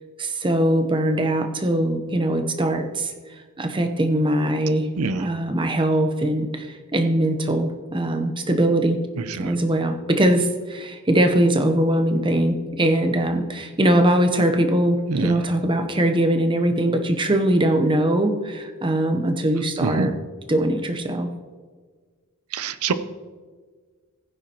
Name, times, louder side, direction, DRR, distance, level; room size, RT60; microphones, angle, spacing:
voice 1, 0.2-3.1 3.6-4.9 5.2-9.0 9.4-20.1 20.5-21.3, right 1 dB, 20° right, 6 dB, 0.9 m, -21 dB
voice 2, 15.1-15.4 19.8-20.1 22.5-22.9, right 4 dB, 70° right, 13 dB, 0.6 m, -25 dB
15.5 x 9.8 x 3.0 m, 1.5 s
head